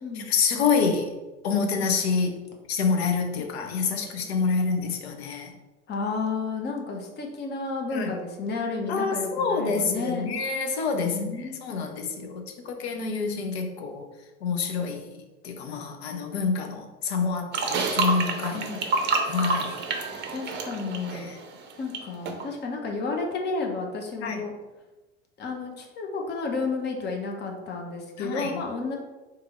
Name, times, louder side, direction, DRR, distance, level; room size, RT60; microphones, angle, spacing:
voice 1, 0.2-1.1 1.4-2.4 2.7-5.5 7.9-8.1 8.9-14.0 14.4-18.7 19.2-19.8 21.1-21.3 24.2-24.4 28.2-28.6, left 5 dB, 60° left, 4 dB, 0.8 m, -27 dB
voice 2, 3.4-4.1 5.9-10.3 11.1-12.6 18.5-18.8 20.3-21.3 21.8-24.5 25.4-28.9, left 3 dB, 30° left, 2 dB, 0.9 m, -32 dB
sound 1, 17.5-22.0 22.2-22.4, right 3 dB, 30° right, 0.7 m, -28 dB
3.5 x 3.4 x 4.3 m, 1.1 s
figure-of-eight pair, 75°, 35 cm